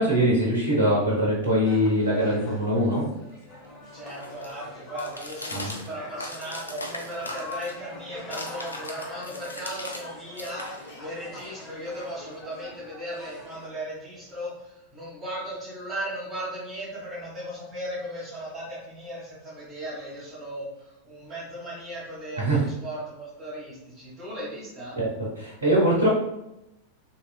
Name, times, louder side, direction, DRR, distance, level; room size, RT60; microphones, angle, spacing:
voice 1, 0.0-3.0 5.5-5.7 22.4-22.6 25.0-25.1 25.4-26.1, equal, 75° right, -5 dB, 0.7 m, -22 dB
sound 1, 1.6-13.7, left 1 dB, 25° left, 1.0 m, -43 dB
sound 2, 2.7-10.1 10.3-12.5, left 1 dB, 80° left, 0.4 m, -41 dB
voice 2, 3.9-25.0, equal, 25° right, -10 dB, 1.4 m, -37 dB
3.0 x 2.8 x 2.3 m, 0.88 s
figure-of-eight pair, 90°, 0 cm